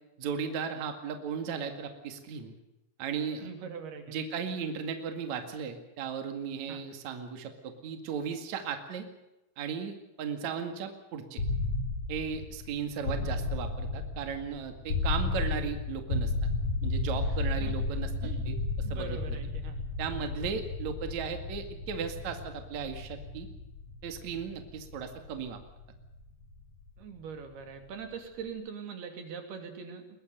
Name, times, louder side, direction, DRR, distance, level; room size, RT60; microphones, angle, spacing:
voice 1, 0.2-2.5 3.0-3.5 4.1-9.0 9.6-11.4 12.1-16.3 16.8-18.1 18.5-18.6 18.9-19.2 20.0-23.5 24.0-25.6, right 6 dB, 50° right, 6 dB, 3.2 m, -36 dB
voice 2, 3.4-4.2 6.7-6.8 13.2-13.4 17.6-17.7 18.2-18.4 18.8-19.8 27.0-30.0, right 6 dB, 80° right, 6 dB, 4.8 m, -42 dB
sound 1, 11.4-27.2, left 3 dB, 55° left, 8.5 m, -33 dB
22.0 x 21.5 x 6.8 m, 0.95 s
omnidirectional pair, 4.5 m